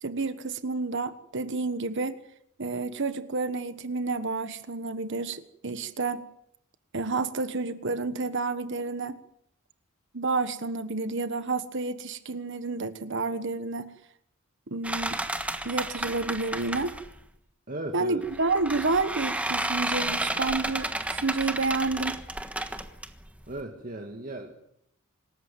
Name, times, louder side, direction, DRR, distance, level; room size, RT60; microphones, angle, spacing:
voice 1, 0.0-2.2 2.6-6.2 6.9-9.2 10.1-13.9 14.7-15.2 15.6-17.0 17.9-22.2, right 3 dB, 60° right, 12 dB, 1.3 m, -30 dB
sound 1, 14.8-17.2 18.2-23.6, right 1 dB, 5° right, 1.4 m, -32 dB
voice 2, 17.7-18.2 23.5-24.6, right 1 dB, 40° right, 2 dB, 2.1 m, -36 dB
25.5 x 14.0 x 9.3 m, 0.74 s
head